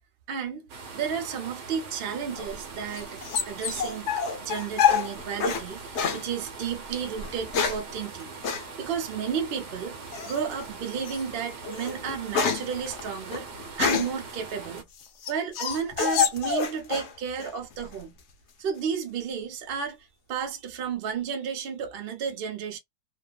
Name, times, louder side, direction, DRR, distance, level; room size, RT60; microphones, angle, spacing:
voice 1, 0.3-4.1 4.4-8.3 8.8-10.0 10.2-14.9 15.3-18.2 18.6-22.8, right 7 dB, 55° right, 0.6 m, -32 dB
sound 1, 0.7-14.8, right 4 dB, 75° right, 1.3 m, -42 dB
sound 2, 2.4-5.7 6.0-6.2 7.2-7.9 8.4-8.7 10.1-10.5 11.1-11.2 11.6-14.2 14.8-17.1 17.4-18.0, left 6 dB, 65° left, 0.7 m, -27 dB
2.8 x 2.3 x 2.3 m
omnidirectional pair, 1.8 m